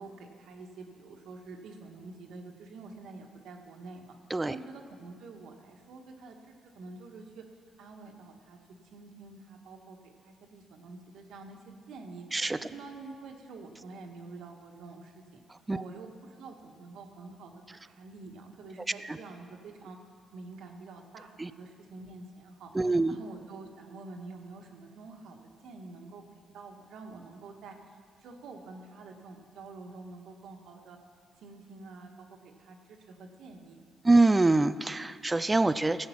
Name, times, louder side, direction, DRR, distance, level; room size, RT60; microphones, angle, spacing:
voice 1, 0.0-4.2 4.5-7.4 7.8-8.6 8.9-15.4 15.7-17.5 17.9-20.0 20.3-22.7 23.1-26.2 26.5-31.0 31.4-33.8, right 3 dB, 80° right, 2 dB, 1.4 m, -47 dB
voice 2, 22.7-23.2 34.0-36.1, right 2 dB, 20° right, 13 dB, 0.4 m, -25 dB
16.0 x 7.8 x 5.8 m, 2.1 s
cardioid pair, 90°, 0 cm